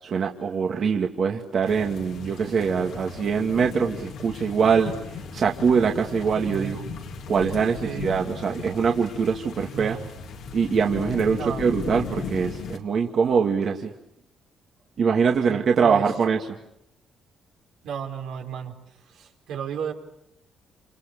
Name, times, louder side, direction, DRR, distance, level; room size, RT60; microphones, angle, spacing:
voice 1, 0.0-6.8 7.3-10.0 10.5-13.9 15.0-16.6, right 6 dB, 55° right, 1 dB, 2.3 m, -23 dB
sound 1, 1.7-12.8, left 5 dB, 80° left, 3.2 m, -37 dB
voice 2, 6.5-7.0 7.8-8.3 9.7-10.1 11.4-11.7 15.5-16.1 17.8-18.8 19.1-19.9, right 7 dB, 85° right, 2 dB, 4.6 m, -33 dB
28.5 x 28.5 x 6.9 m, 0.78 s
cardioid pair, 90°, 0 cm